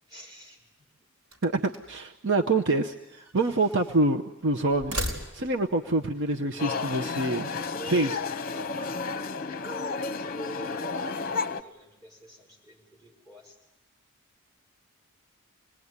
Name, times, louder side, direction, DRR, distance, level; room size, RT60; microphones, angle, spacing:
voice 1, 0.1-1.1 9.9-13.7, left 1 dB, 20° right, -1 dB, 6.0 m, -53 dB
sound 1, 1.2-2.1 3.0-4.0 4.7-5.7, equal, 85° right, 4.3 m, -37 dB
voice 2, 1.4-7.5 7.8-8.2, right 2 dB, 55° right, 4 dB, 0.9 m, -26 dB
Arcade ambience in a amusement arcade in Great Yarmouth, 6.6-11.6, left 4 dB, 40° left, 0.9 m, -32 dB
26.5 x 20.5 x 9.7 m, 0.94 s
head